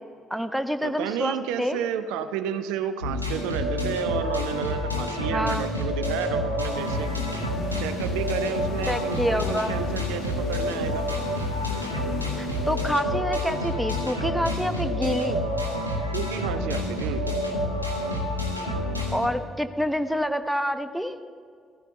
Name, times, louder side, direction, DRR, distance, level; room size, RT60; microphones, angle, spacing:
voice 1, 0.3-1.8 5.3-5.7 8.9-9.7 12.4-15.4 19.1-21.2, equal, ahead, 9 dB, 0.9 m, -27 dB
voice 2, 0.8-7.1 7.8-11.1 16.1-17.4, right 9 dB, 65° right, 11 dB, 0.5 m, -32 dB
sound 1, 3.0-19.3, left 1 dB, 90° right, 1.0 m, -28 dB
sound 2, 6.7-13.5, left 5 dB, 60° left, 1.3 m, -39 dB
15.5 x 14.5 x 3.8 m, 2.1 s
figure-of-eight pair, 45°, 0 cm